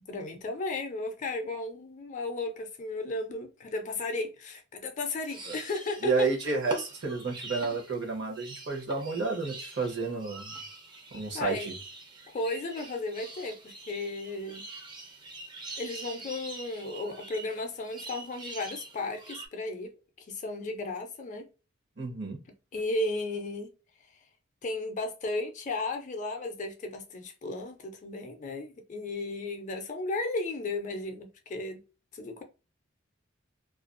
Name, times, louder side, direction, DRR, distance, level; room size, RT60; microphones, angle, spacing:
voice 1, 0.1-6.3 11.3-11.7 12.3-14.7 15.8-19.9 20.2-21.5 22.7-23.7 24.6-31.8 32.1-32.4, left 2 dB, 40° left, 0.4 m, -34 dB
sound 1, 5.3-19.5, right 2 dB, 25° right, 0.4 m, -44 dB
voice 2, 6.0-10.5 11.1-11.8 22.0-22.4, right 4 dB, 60° right, 0.8 m, -31 dB
2.4 x 2.2 x 2.4 m
head